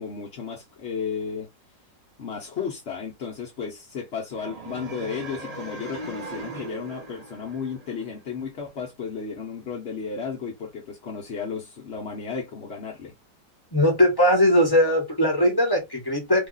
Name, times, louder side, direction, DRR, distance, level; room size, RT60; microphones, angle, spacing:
voice 1, 0.0-1.5 2.2-13.1, left 6 dB, 55° left, 0.8 m, -33 dB
sound 1, 4.3-8.4, right 2 dB, 70° right, 0.3 m, -39 dB
voice 2, 13.7-16.5, left 1 dB, 15° left, 0.9 m, -20 dB
2.9 x 2.3 x 3.8 m
omnidirectional pair, 1.9 m